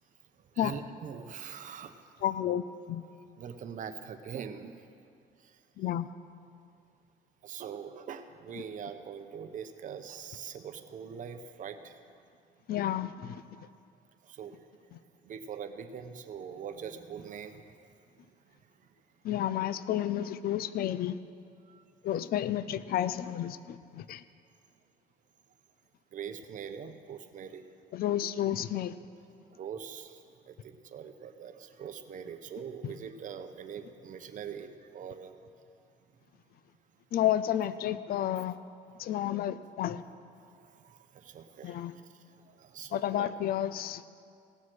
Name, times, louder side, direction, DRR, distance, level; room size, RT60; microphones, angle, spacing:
voice 1, 0.6-1.9 3.4-4.7 7.4-11.9 14.3-14.5 15.3-17.6 26.1-27.6 29.6-30.1 30.5-35.3 40.8-41.8 42.5-43.3, right 7 dB, 50° right, 8 dB, 0.9 m, -42 dB
voice 2, 2.2-3.0 5.8-6.1 12.7-13.4 19.2-21.2 22.0-24.2 27.9-28.9 32.8-32.9 37.1-38.6 39.0-40.0 41.6-41.9 42.9-44.0, left 11 dB, 65° left, 15 dB, 0.5 m, -31 dB
17.5 x 7.3 x 6.2 m, 2.3 s
cardioid pair, 110°, 17 cm